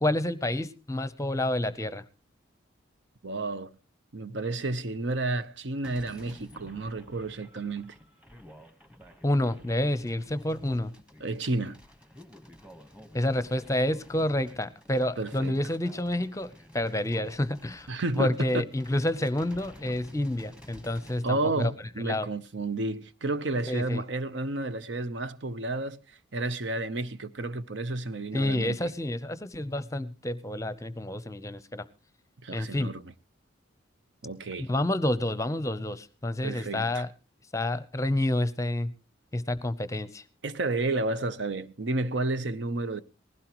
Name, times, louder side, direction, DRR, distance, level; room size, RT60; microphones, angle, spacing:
voice 1, 0.0-2.0 9.2-10.9 13.1-17.9 18.2-21.7 22.0-22.3 23.7-24.0 28.3-31.8 32.5-32.9 34.6-37.1 37.5-38.9 39.3-40.2, left 1 dB, 15° left, 0.7 m, -29 dB
voice 2, 3.2-3.7 4.1-7.9 11.2-11.8 15.2-15.6 17.9-18.7 21.2-28.9 32.4-33.1 34.2-34.7 36.4-37.0 40.4-43.0, right 2 dB, 65° right, 0.8 m, -31 dB
sound 1, 5.8-21.3, equal, 5° right, 1.2 m, -51 dB
19.5 x 16.0 x 3.0 m
head